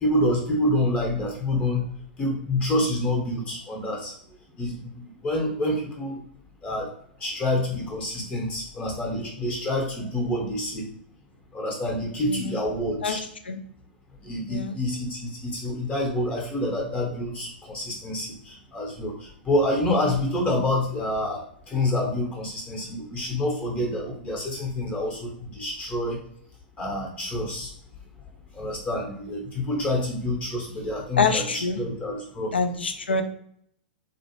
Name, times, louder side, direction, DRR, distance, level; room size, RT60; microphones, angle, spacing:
voice 1, 0.0-1.8 2.2-4.1 4.6-6.2 6.6-6.9 7.2-10.9 11.5-13.2 14.2-26.2 26.8-27.7 28.5-32.5, left 1 dB, 25° left, -2 dB, 0.7 m, -27 dB
voice 2, 31.2-31.8 32.5-33.2, left 4 dB, 85° left, 8 dB, 0.3 m, -25 dB
2.5 x 2.0 x 2.8 m, 0.64 s
hypercardioid pair, 110°, 5 cm